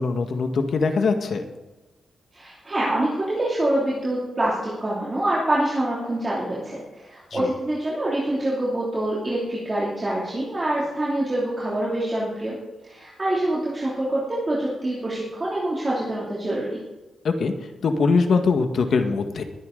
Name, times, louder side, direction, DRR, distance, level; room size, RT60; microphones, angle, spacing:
voice 1, 0.0-1.4 7.3-7.5 17.2-17.5 17.8-19.4, left 4 dB, 60° left, 6 dB, 1.5 m, -22 dB
voice 2, 2.3-12.5 12.9-16.8, right 1 dB, 25° right, -6 dB, 2.8 m, -25 dB
21.0 x 9.9 x 3.9 m, 1.1 s
wide cardioid pair, 140°, 0 cm